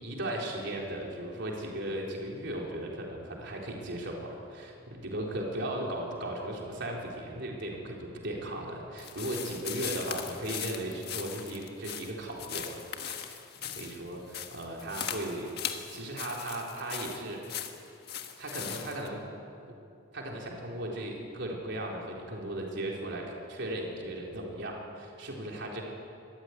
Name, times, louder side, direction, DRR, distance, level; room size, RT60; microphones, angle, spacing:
voice 1, 0.0-12.8 13.1-13.4 13.6-15.6 15.9-17.6 18.4-19.2 20.1-25.8, right 1 dB, 60° right, -2 dB, 4.1 m, -37 dB
sound 1, 9.0-19.1, left 9 dB, 50° left, 1.5 m, -39 dB
25.0 x 14.5 x 9.5 m, 2.6 s
head